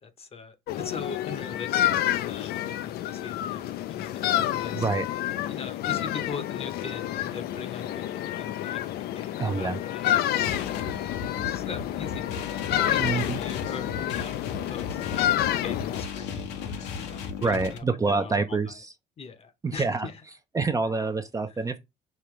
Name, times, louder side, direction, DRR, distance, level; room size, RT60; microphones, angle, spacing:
voice 1, 0.0-1.9 2.2-4.9 5.5-12.3 12.7-14.3 14.7-18.8 19.2-20.2, left 5 dB, 35° left, 0.8 m, -41 dB
sound 1, 0.7-16.0, left 12 dB, 70° left, 0.4 m, -29 dB
voice 2, 4.7-5.1 9.4-9.8 13.0-13.4 17.4-18.9 19.6-20.1 20.5-21.8, right 4 dB, 20° right, 0.5 m, -26 dB
sound 2, 10.4-17.8, left 6 dB, 85° left, 0.9 m, -35 dB
5.1 x 2.9 x 3.0 m
cardioid pair, 110°, 17 cm